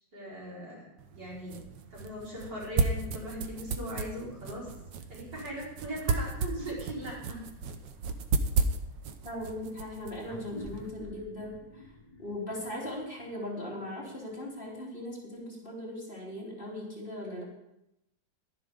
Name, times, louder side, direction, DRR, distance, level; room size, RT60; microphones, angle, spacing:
voice 1, 0.1-1.6 1.9-4.7 5.1-7.5, equal, 70° right, -6 dB, 5.6 m, -39 dB
sound 1, 1.0-10.9, right 4 dB, 90° right, 1.6 m, -34 dB
voice 2, 9.2-11.8 12.2-17.4, left 1 dB, 30° left, -5 dB, 3.5 m, -39 dB
sound 2, 10.3-15.1, left 2 dB, 60° left, 2.3 m, -49 dB
12.0 x 11.0 x 5.0 m, 0.86 s
omnidirectional pair, 1.9 m